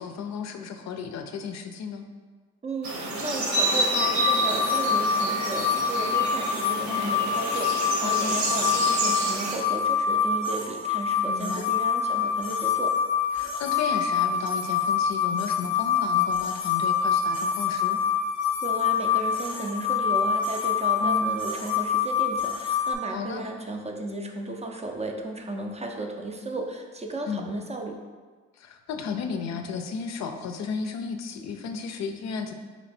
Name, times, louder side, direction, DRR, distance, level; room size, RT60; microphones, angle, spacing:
voice 1, 0.0-2.0 6.9-7.2 8.0-8.4 11.2-11.7 13.3-18.0 21.0-21.4 23.1-23.4 27.3-27.5 28.5-32.5, left 5 dB, 60° left, 6 dB, 0.4 m, -34 dB
voice 2, 2.6-13.0 18.6-28.0, right 2 dB, 20° right, 2 dB, 0.4 m, -34 dB
sound 1, 2.8-9.6, right 2 dB, 65° right, 1.0 m, -28 dB
sound 2, 3.9-22.9, left 6 dB, 15° left, 0.7 m, -26 dB
3.2 x 3.0 x 4.2 m, 1.5 s
cardioid pair, 90°, 30 cm